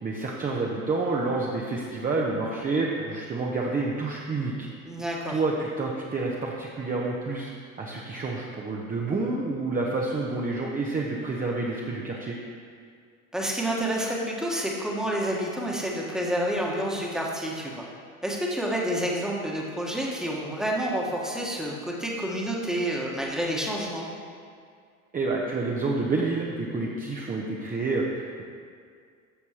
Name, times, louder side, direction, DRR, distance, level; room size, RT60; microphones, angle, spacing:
voice 1, 0.0-4.7 5.3-7.5 7.8-12.4 25.1-28.4, right 3 dB, 20° right, -2 dB, 0.8 m, -28 dB
voice 2, 4.8-5.4 13.3-17.9 18.2-24.1, right 1 dB, ahead, -2 dB, 1.3 m, -29 dB
11.5 x 6.8 x 3.0 m, 2.2 s
figure-of-eight pair, 70°, 44 cm